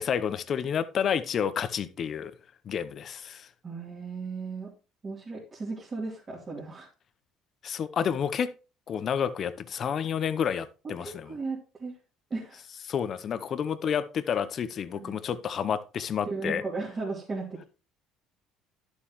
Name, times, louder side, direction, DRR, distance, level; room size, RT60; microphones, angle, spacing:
voice 1, 0.0-2.3 2.7-3.5 7.6-8.5 8.9-11.3 12.9-16.6, left 8 dB, 50° left, 0.8 m, -30 dB
voice 2, 3.6-4.7 5.0-6.9 11.0-11.9 12.3-12.6 14.9-15.1 16.3-17.6, right 4 dB, 35° right, 2.9 m, -36 dB
11.0 x 7.1 x 3.1 m
hypercardioid pair, 70°, 0 cm